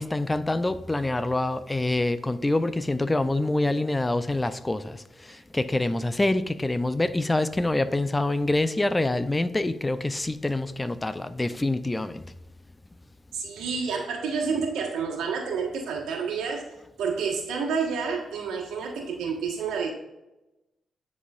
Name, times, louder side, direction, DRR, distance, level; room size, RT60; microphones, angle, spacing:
voice 1, 0.0-5.0 5.3-12.2, left 2 dB, 20° left, 13 dB, 0.4 m, -26 dB
voice 2, 13.3-19.9, right 5 dB, 85° right, 0 dB, 1.4 m, -29 dB
9.8 x 4.2 x 2.5 m, 0.97 s
supercardioid pair, 60°, 0 cm